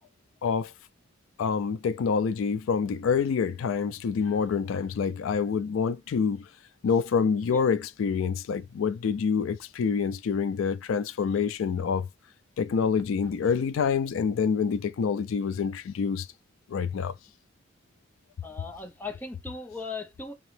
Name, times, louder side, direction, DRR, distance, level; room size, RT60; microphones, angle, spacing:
voice 1, 1.4-6.4 6.8-12.1 12.6-16.3 16.7-17.1, left 6 dB, 90° left, 0.3 m, -27 dB
voice 2, 18.4-20.3, left 4 dB, 10° left, 0.5 m, -38 dB
3.0 x 2.9 x 3.2 m
head